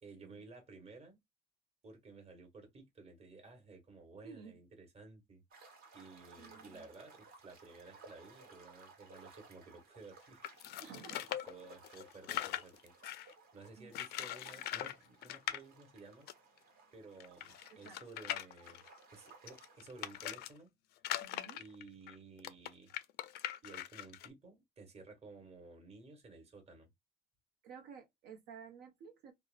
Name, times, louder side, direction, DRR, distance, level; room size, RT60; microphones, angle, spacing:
voice 1, 0.0-1.2 1.8-5.4 5.9-10.4 10.8-12.9 13.5-16.3 16.9-18.8 19.1-20.7 21.5-22.9 23.6-26.9, right 3 dB, 40° right, 1.2 m, -55 dB
sound 1, 5.5-20.2, right 4 dB, 60° right, 1.1 m, -60 dB
voice 2, 6.4-6.9 10.8-11.3 13.8-13.9 17.7-18.0 21.2-21.6 27.6-29.3, right 6 dB, 85° right, 0.9 m, -53 dB
sound 2, 10.4-13.3 13.9-15.0 15.2-15.6 16.3-16.4 16.6-16.7 17.2-20.5 21.0-24.3, left 12 dB, 75° left, 0.4 m, -41 dB
2.7 x 2.1 x 2.4 m
cardioid pair, 110°, 17 cm